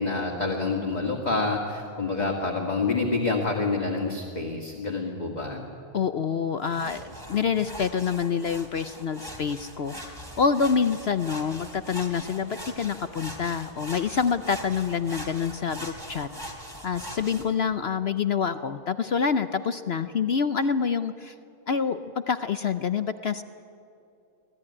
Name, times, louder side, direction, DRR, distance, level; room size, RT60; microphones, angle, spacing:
voice 1, 0.0-5.6, left 3 dB, 30° left, 0 dB, 2.1 m, -27 dB
voice 2, 5.9-16.3 16.8-21.3 21.7-23.4, left 6 dB, 55° left, 10 dB, 0.8 m, -27 dB
sound 1, 6.6-17.4, equal, 15° right, 3.0 m, -41 dB
25.0 x 17.5 x 9.8 m, 2.6 s
omnidirectional pair, 1.6 m